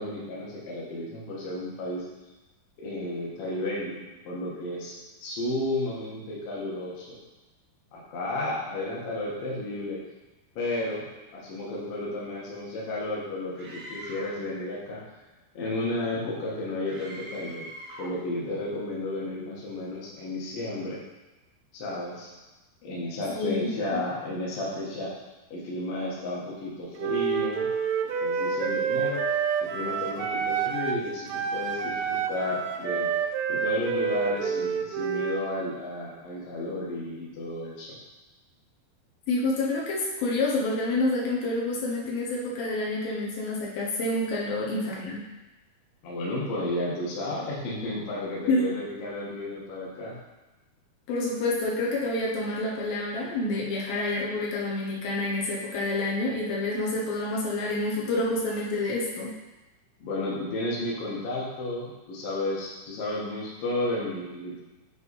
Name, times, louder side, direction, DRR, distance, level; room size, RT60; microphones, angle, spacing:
voice 1, 0.0-2.1 2.8-4.9 5.2-7.2 7.9-10.0 10.6-11.1 11.3-15.0 15.5-17.7 18.0-21.0 21.7-22.3 22.8-25.1 25.5-27.7 28.0-33.1 33.5-37.9 46.0-50.2 60.0-64.6, left 1 dB, 50° left, -5 dB, 1.9 m, -32 dB
Screaming, 13.6-14.4 16.9-18.2, right 1 dB, 70° right, 1.7 m, -42 dB
voice 2, 23.3-24.0 39.3-45.3 48.5-48.7 51.1-59.3, left 2 dB, 75° left, -4 dB, 2.7 m, -28 dB
Wind instrument woodwind instrument, 27.0-31.0 31.3-35.5, right 6 dB, 85° right, 1.9 m, -28 dB
8.3 x 4.1 x 4.1 m, 1.1 s
omnidirectional pair, 4.5 m